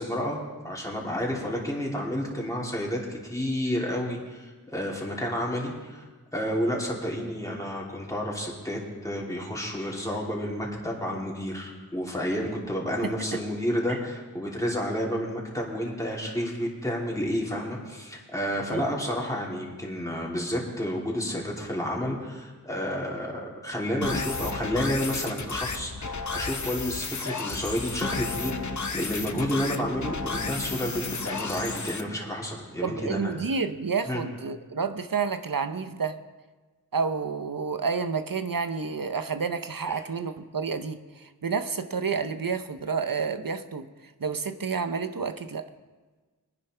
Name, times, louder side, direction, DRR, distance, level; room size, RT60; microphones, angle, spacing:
voice 1, 0.0-6.0 6.3-33.3 34.1-34.2 39.9-40.0, equal, 10° left, -3 dB, 3.0 m, -30 dB
sound 1, 24.0-32.0, left 4 dB, 55° left, 0.9 m, -32 dB
voice 2, 32.8-36.2 36.9-43.9 44.2-45.7, right 5 dB, 70° right, 9 dB, 0.8 m, -30 dB
22.0 x 10.0 x 3.3 m, 1.3 s
wide cardioid pair, 45°, 35 cm